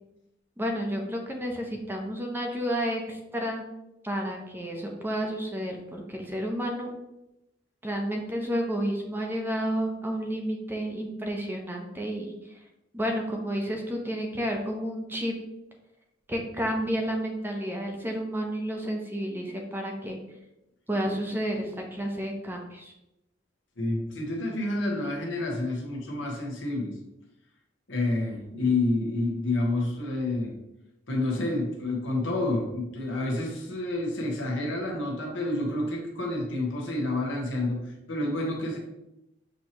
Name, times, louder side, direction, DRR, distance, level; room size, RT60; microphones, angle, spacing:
voice 1, 0.6-3.6 4.0-6.9 7.8-12.6 12.9-15.3 16.3-20.2 20.9-22.9, equal, 10° right, 2 dB, 0.6 m, -31 dB
voice 2, 23.8-26.9 27.9-30.5 31.1-38.8, left 2 dB, 85° left, 0 dB, 1.1 m, -29 dB
6.2 x 2.9 x 2.9 m, 0.90 s
head